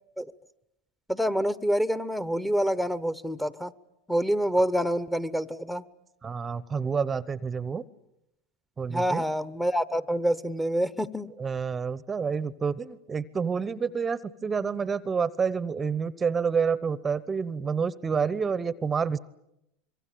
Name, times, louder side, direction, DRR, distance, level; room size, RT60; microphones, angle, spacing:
voice 1, 1.1-3.7 4.1-5.8 8.9-11.3, equal, 5° left, 14 dB, 1.0 m, -27 dB
voice 2, 6.2-7.8 8.8-9.2 11.4-19.2, right 6 dB, 20° right, 18 dB, 0.9 m, -28 dB
25.5 x 23.0 x 8.6 m, 0.83 s
hypercardioid pair, 100°, 0 cm